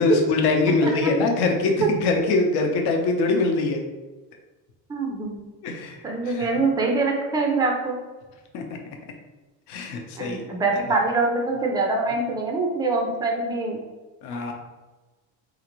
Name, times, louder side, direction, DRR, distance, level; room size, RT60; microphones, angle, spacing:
voice 1, 0.0-3.8 5.6-6.0 6.3-6.5 8.5-8.6 9.7-10.4 14.2-14.5, left 3 dB, 65° left, 2 dB, 0.7 m, -23 dB
voice 2, 4.9-5.4 6.0-8.0 10.2-13.8, right 3 dB, 10° right, 1 dB, 0.3 m, -24 dB
3.8 x 2.5 x 2.9 m, 1.2 s
cardioid pair, 145°, 42 cm